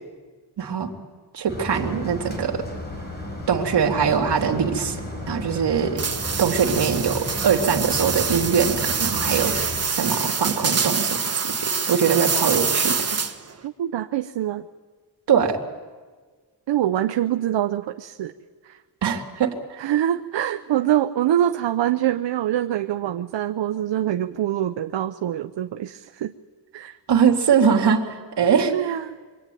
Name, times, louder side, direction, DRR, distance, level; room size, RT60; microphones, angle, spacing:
voice 1, 0.6-0.9 1.3-2.6 3.5-5.0 5.3-6.0 6.4-11.5 11.9-13.2 15.3-15.6 19.0-19.6 27.1-28.9, right 7 dB, 70° right, 3 dB, 3.0 m, -22 dB
sound 1, 1.5-9.8, left 1 dB, 25° left, 6.7 m, -34 dB
sound 2, 6.0-13.5, right 5 dB, 35° right, 1.6 m, -25 dB
voice 2, 13.6-14.6 16.7-18.3 18.6-18.8 19.8-26.3 26.7-27.0 28.7-29.2, right 11 dB, 85° right, 8 dB, 0.9 m, -24 dB
26.0 x 24.5 x 9.3 m, 1.4 s
wide cardioid pair, 110°, 42 cm